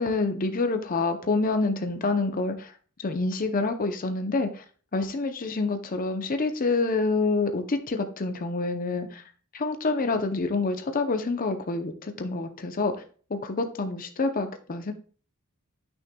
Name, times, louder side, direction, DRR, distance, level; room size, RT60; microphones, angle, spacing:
voice 1, 0.0-2.7 3.0-4.6 4.9-9.2 9.5-12.9 13.3-14.9, left 3 dB, 40° left, 7 dB, 0.6 m, -27 dB
8.7 x 6.2 x 2.3 m, 0.41 s
head